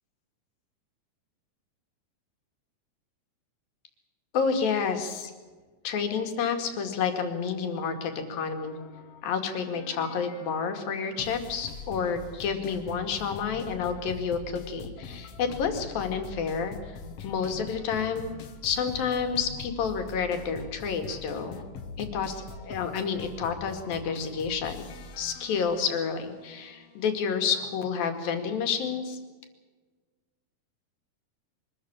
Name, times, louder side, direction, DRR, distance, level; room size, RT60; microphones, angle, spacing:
voice 1, 4.3-5.3 5.8-8.8 9.2-18.3 18.6-21.6 22.0-24.9 25.2-29.2, left 6 dB, 85° left, 6 dB, 4.0 m, -30 dB
sound 1, 8.6-27.8, left 4 dB, 55° left, 1.9 m, -44 dB
23.5 x 14.0 x 8.7 m, 1.4 s
omnidirectional pair, 4.0 m